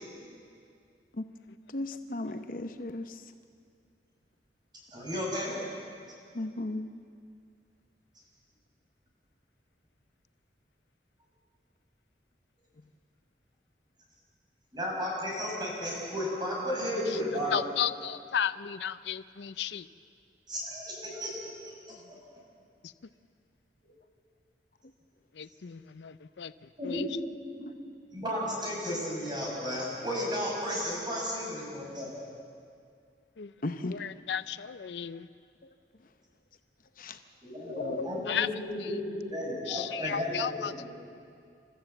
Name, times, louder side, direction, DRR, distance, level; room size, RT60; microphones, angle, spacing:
voice 1, 1.7-3.2 6.3-6.9 33.6-34.0 37.0-37.2 37.7-38.2, left 2 dB, 50° left, 8 dB, 0.8 m, -35 dB
voice 2, 4.9-5.6 14.7-17.5 20.5-21.3 21.6-21.7 26.8-27.1 28.1-32.1 37.4-40.9, equal, 25° right, -3 dB, 6.0 m, -33 dB
voice 3, 17.5-19.9 21.9-22.0 22.8-22.9 25.3-26.5 26.8-27.1 33.4-33.5 33.9-35.3 38.3-38.5 38.8-39.0 39.7-40.9, left 8 dB, 80° left, 14 dB, 0.5 m, -34 dB
28.5 x 13.5 x 7.9 m, 2.3 s
head